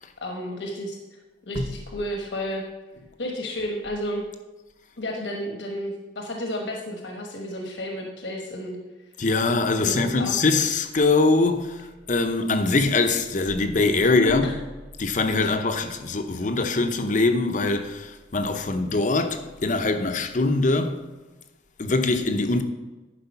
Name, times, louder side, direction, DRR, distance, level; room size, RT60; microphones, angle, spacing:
voice 1, 0.2-1.0 1.5-2.6 3.2-4.2 5.0-8.8 9.8-10.4 14.2-14.5, equal, 75° left, 1.2 m, -32 dB
voice 2, 9.2-14.5 15.0-21.0 21.8-22.6, left 3 dB, 45° left, 0.7 m, -23 dB
11.0 x 5.0 x 5.6 m
head